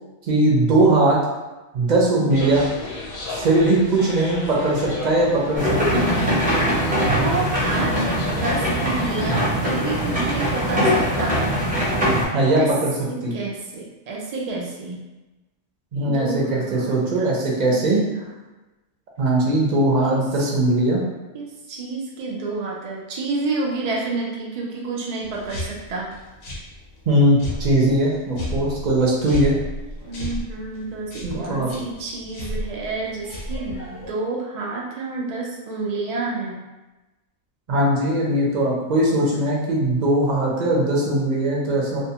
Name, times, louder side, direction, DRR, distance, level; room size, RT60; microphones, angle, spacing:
voice 1, 0.3-1.2 1.7-2.6 3.3-6.0 12.3-12.9 13.2-13.3 15.9-18.0 19.2-21.0 27.1-29.5 31.2-31.7 37.7-42.0, right 1 dB, 50° right, -4 dB, 0.6 m, -20 dB
sound 1, 2.3-9.0, left 2 dB, 60° left, 0.7 m, -35 dB
sound 2, 5.6-12.3, equal, 10° right, 0.7 m, -21 dB
voice 2, 7.1-11.5 12.6-12.7 13.1-15.0 16.0-18.3 20.1-20.2 21.3-26.2 30.1-36.6, right 3 dB, 80° right, -3 dB, 0.3 m, -29 dB
sound 3, 25.2-34.1, equal, 90° left, 1.1 m, -34 dB
2.6 x 2.2 x 2.8 m, 1.1 s
omnidirectional pair, 1.2 m